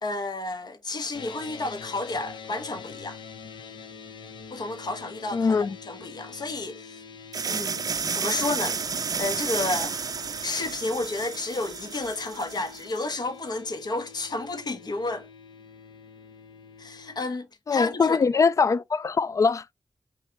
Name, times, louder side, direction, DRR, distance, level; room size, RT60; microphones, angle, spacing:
voice 1, 0.0-3.2 4.5-5.6 5.9-7.0 7.5-7.9 8.1-8.8 9.2-10.0 10.4-15.3 16.8-18.2, left 2 dB, 60° left, 1.2 m, -31 dB
sound 1, 1.1-17.2, left 5 dB, 85° left, 0.8 m, -45 dB
voice 2, 5.3-5.8 17.7-19.6, left 5 dB, 45° left, 0.3 m, -22 dB
sound 2, 7.3-13.0, right 6 dB, 50° right, 0.4 m, -31 dB
5.6 x 2.5 x 3.4 m
wide cardioid pair, 90°, 8 cm